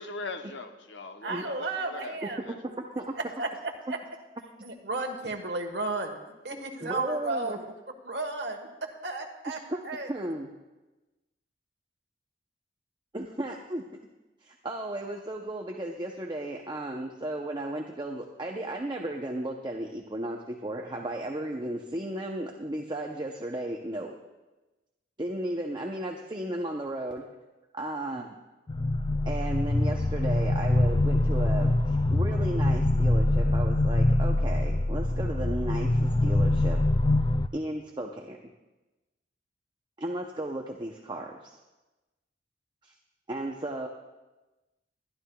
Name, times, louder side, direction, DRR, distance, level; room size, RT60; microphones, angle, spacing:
voice 1, 0.0-2.6, left 3 dB, 75° left, 6 dB, 0.9 m, -40 dB
voice 2, 1.2-2.4 3.4-3.5 3.9-4.0 4.6-6.2 6.4-7.7 8.0-9.6 9.8-10.1, right 2 dB, 65° right, 3 dB, 1.3 m, -33 dB
voice 3, 2.2-3.1 6.8-7.6 9.5-9.8 10.1-10.4 13.1-13.8 14.4-24.2 25.2-27.3 27.7-28.4 29.3-36.8 37.5-38.5 40.0-41.5 42.8-42.9 43.3-43.9, right 1 dB, 25° right, 1 dB, 0.6 m, -34 dB
sound 1, 28.7-37.5, left 1 dB, 25° left, 0.3 m, -24 dB
22.5 x 11.5 x 2.3 m, 1.1 s
head